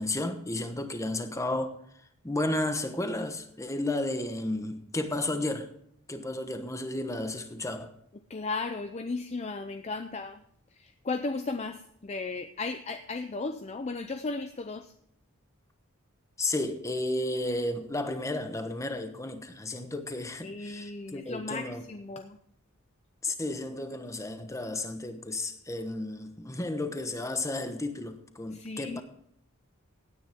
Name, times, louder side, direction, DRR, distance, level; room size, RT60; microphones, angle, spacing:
voice 1, 0.0-1.7 2.2-5.7 6.1-7.9 16.4-21.8 23.2-29.0, left 2 dB, 15° left, 1.0 m, -33 dB
voice 2, 8.3-10.4 10.7-14.9 20.4-22.4 28.5-29.0, left 3 dB, 30° left, 0.5 m, -35 dB
17.0 x 9.4 x 3.5 m
head